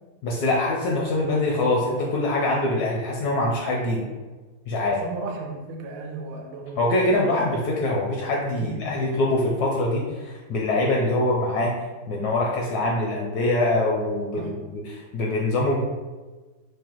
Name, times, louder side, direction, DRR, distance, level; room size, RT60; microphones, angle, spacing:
voice 1, 0.2-4.1 4.7-5.0 6.8-11.8 12.1-15.8, left 2 dB, 75° left, -2 dB, 0.9 m, -24 dB
voice 2, 4.9-7.2 8.6-8.8 14.4-14.6, right 3 dB, 80° right, 2 dB, 1.3 m, -35 dB
4.8 x 2.1 x 2.9 m, 1.3 s
omnidirectional pair, 2.1 m